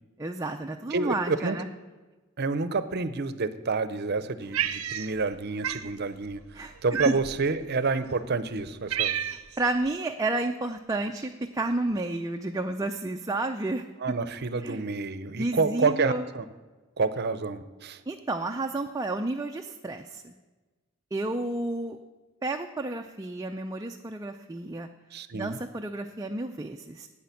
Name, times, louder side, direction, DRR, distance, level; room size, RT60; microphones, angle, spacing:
voice 1, 0.2-1.7 6.5-6.7 7.1-7.2 9.3-14.2 14.6-14.8 15.4-16.2 18.1-20.4 21.1-22.0 22.4-24.9 25.3-27.1, right 2 dB, 15° right, 4 dB, 0.4 m, -31 dB
voice 2, 0.9-1.6 2.4-6.4 6.8-9.2 14.0-16.4 17.0-18.0 25.1-25.6, right 4 dB, 50° right, 13 dB, 0.7 m, -28 dB
Cat, 4.5-5.3 5.6-5.9 6.9-7.5 8.2-8.3 8.6-9.6, right 9 dB, 85° right, 0.7 m, -30 dB
10.0 x 8.6 x 8.4 m, 1.3 s
head